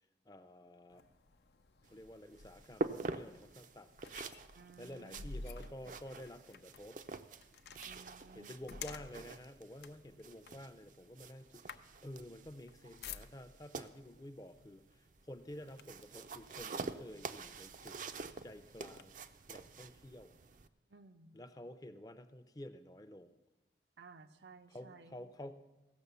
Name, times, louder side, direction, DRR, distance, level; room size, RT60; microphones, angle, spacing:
voice 1, 0.3-1.0 1.9-3.9 4.8-7.0 8.4-14.8 15.3-18.0 18.4-19.2 19.5-20.3 21.3-23.4 24.7-25.5, left 1 dB, 20° left, 10 dB, 0.5 m, -51 dB
sound 1, 0.9-13.7 14.6-14.8 15.2-16.2 16.8-16.9 17.4-19.0, left 4 dB, 70° left, 0.5 m, -52 dB
sound 2, 1.8-20.7, right 3 dB, 45° right, 0.4 m, -47 dB
voice 2, 4.5-5.2 7.8-8.6 20.9-21.4 24.0-25.3, right 4 dB, 85° right, 9 dB, 0.7 m, -57 dB
15.5 x 6.6 x 6.8 m, 1.1 s
head